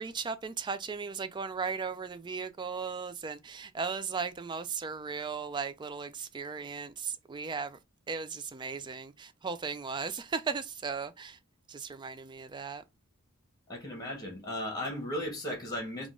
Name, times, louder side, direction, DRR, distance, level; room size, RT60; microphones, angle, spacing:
voice 1, 0.0-7.8 8.1-11.4 11.7-12.8, right 5 dB, 20° right, 0.3 m, -36 dB
voice 2, 13.7-16.1, left 1 dB, 20° left, 1.2 m, -36 dB
3.7 x 2.4 x 3.6 m
head